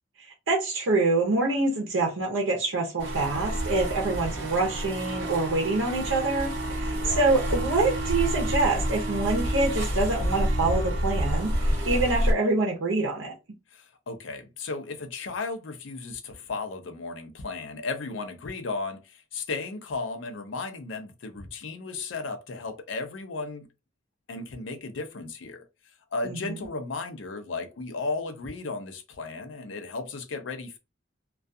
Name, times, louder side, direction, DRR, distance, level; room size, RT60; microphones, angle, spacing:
voice 1, 0.2-13.3 26.2-26.6, right 2 dB, 85° right, 0.7 m, -26 dB
sound 1, 3.0-12.3, right 1 dB, 65° right, 1.1 m, -28 dB
voice 2, 6.9-7.3 13.7-23.7 24.3-25.6 26.1-30.8, left 3 dB, 75° left, 0.5 m, -35 dB
2.3 x 2.3 x 2.6 m
head